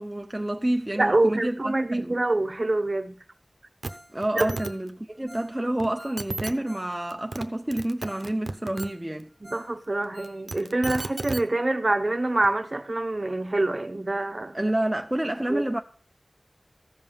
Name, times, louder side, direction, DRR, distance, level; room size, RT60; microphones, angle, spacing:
voice 1, 0.0-2.1 4.1-9.3 14.5-15.8, right 1 dB, 20° right, 0.6 m, -28 dB
voice 2, 1.0-3.2 4.3-4.6 9.4-14.6 15.5-15.6, right 2 dB, 50° right, 0.9 m, -26 dB
sound 1, 3.8-3.9 4.2-4.7 5.8-5.9 6.2-6.5 7.1-7.4 7.7-8.9 10.2-11.4 12.4-12.5, right 3 dB, 80° right, 0.7 m, -33 dB
Ringtone, 3.9-4.2 4.4-6.9 7.2-7.3 7.8-7.9 8.1-8.3 8.6-9.7 10.0-11.1 11.4-11.5 11.9-12.0, equal, 5° left, 1.3 m, -50 dB
14.5 x 5.4 x 5.4 m
wide cardioid pair, 55°, 0 cm